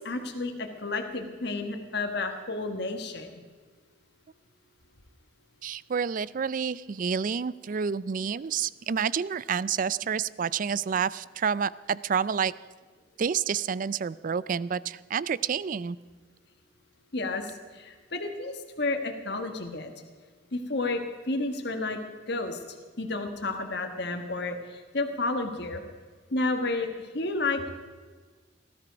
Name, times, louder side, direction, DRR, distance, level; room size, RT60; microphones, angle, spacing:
voice 1, 0.0-3.3 17.1-17.4 17.8-19.9 20.5-21.0 21.3-22.0 22.3-22.6 23.0-24.6 24.9-25.8 26.3-26.9 27.1-27.6, left 2 dB, 60° left, 5 dB, 1.4 m, -31 dB
voice 2, 5.6-12.5 13.2-16.0, right 6 dB, 45° right, 19 dB, 0.4 m, -29 dB
18.5 x 13.0 x 5.1 m, 1.5 s
head